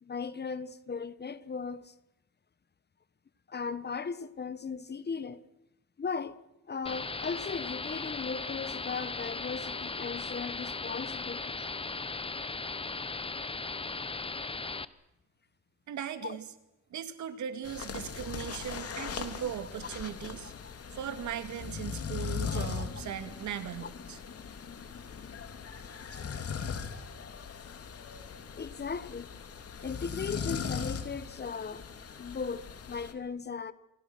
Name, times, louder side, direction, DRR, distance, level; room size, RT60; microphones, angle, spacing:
voice 1, 0.0-1.9 3.5-5.4 6.0-6.4 6.7-11.6 16.2-16.4 22.2-22.6 28.6-29.3 29.8-31.9 32.2-33.7, left 5 dB, 35° left, 1.4 m, -37 dB
sound 1, 6.9-14.9, left 3 dB, 20° left, 1.1 m, -37 dB
voice 2, 15.9-16.5 16.9-20.5 20.9-24.2, right 9 dB, 70° right, 2.4 m, -38 dB
sound 2, 17.6-33.1, left 6 dB, 50° left, 3.0 m, -39 dB
28.0 x 24.5 x 6.3 m
cardioid pair, 90°, 30 cm